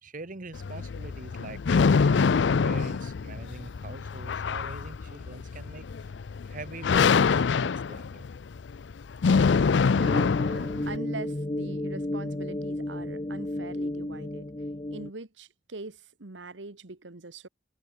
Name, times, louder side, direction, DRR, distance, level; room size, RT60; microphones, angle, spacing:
voice 1, 0.0-6.2 6.4-8.3, right 3 dB, 45° right, 1.3 m, -44 dB
sound 1, 0.5-11.0, left 5 dB, 70° left, 0.5 m, -25 dB
voice 2, 9.9-14.5 14.9-17.5, right 3 dB, 80° right, 1.5 m, -42 dB
sound 2, 10.0-15.1, left 1 dB, 25° left, 0.9 m, -32 dB
head